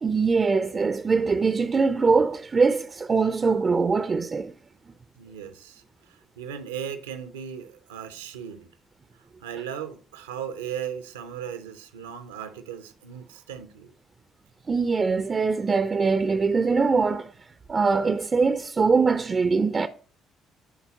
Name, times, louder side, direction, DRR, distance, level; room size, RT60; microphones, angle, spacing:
voice 1, 0.0-4.5 14.7-17.3 17.7-19.9, right 4 dB, 35° right, 0.5 m, -22 dB
voice 2, 5.2-8.7 9.4-13.9, right 8 dB, 75° right, 0.6 m, -37 dB
11.0 x 4.0 x 2.9 m
figure-of-eight pair, 50°, 0 cm